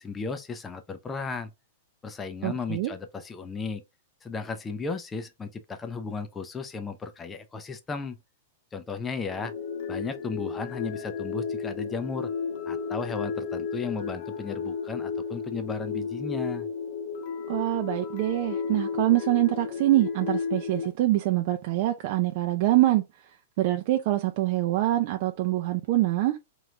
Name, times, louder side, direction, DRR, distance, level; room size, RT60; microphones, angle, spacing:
voice 1, 0.0-1.5 2.0-3.8 4.2-8.2 8.7-9.5 9.9-12.3 12.7-16.7, left 4 dB, 15° left, 0.6 m, -35 dB
voice 2, 2.4-2.9 17.5-23.0 23.6-26.4, right 15 dB, 50° right, 0.5 m, -25 dB
sound 1, 9.3-20.9, left 5 dB, 50° left, 1.1 m, -33 dB
3.8 x 3.1 x 3.3 m
hypercardioid pair, 145°, 0 cm